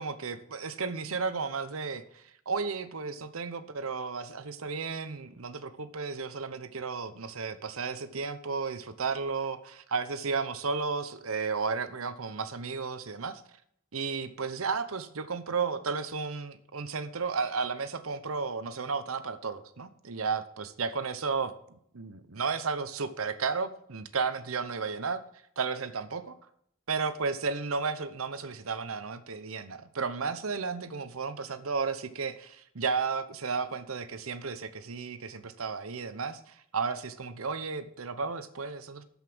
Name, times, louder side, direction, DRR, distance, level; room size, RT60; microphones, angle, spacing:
voice 1, 0.0-13.4 13.9-25.2 25.6-26.4 26.9-39.0, right 5 dB, 85° right, 12 dB, 0.9 m, -33 dB
13.0 x 5.6 x 6.2 m, 0.70 s
head